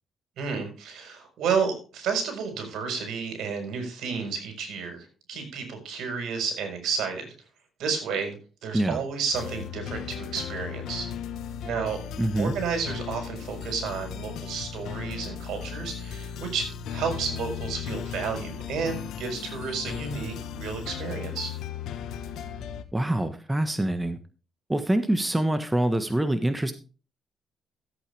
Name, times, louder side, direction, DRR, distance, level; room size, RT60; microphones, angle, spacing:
voice 1, 0.4-7.2 7.8-8.4 8.6-11.1 11.6-12.0 12.4-21.5, right 5 dB, 80° right, 5 dB, 4.8 m, -31 dB
sound 1, 9.3-22.8, left 8 dB, 80° left, 1.4 m, -36 dB
voice 2, 12.2-12.5 22.9-24.2 24.7-26.7, right 1 dB, 10° right, 9 dB, 1.4 m, -25 dB
14.5 x 8.4 x 3.5 m, 0.36 s
cardioid pair, 90°, 0 cm